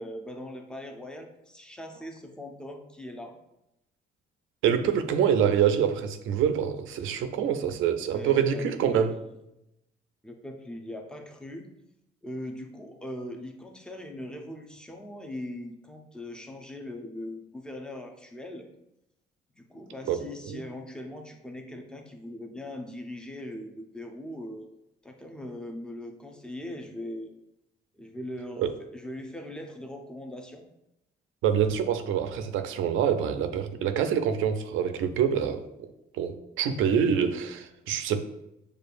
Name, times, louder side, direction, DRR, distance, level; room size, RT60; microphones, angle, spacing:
voice 1, 0.0-3.4 8.1-9.3 10.2-11.7 12.2-18.7 19.6-24.7 25.0-27.3 27.9-30.6, left 1 dB, 5° left, 0.6 m, -40 dB
voice 2, 4.6-9.1 20.1-20.6 28.6-28.7 31.4-35.9 36.2-38.2, right 8 dB, 85° right, 0.4 m, -26 dB
6.4 x 2.3 x 2.5 m
cardioid pair, 90°, 20 cm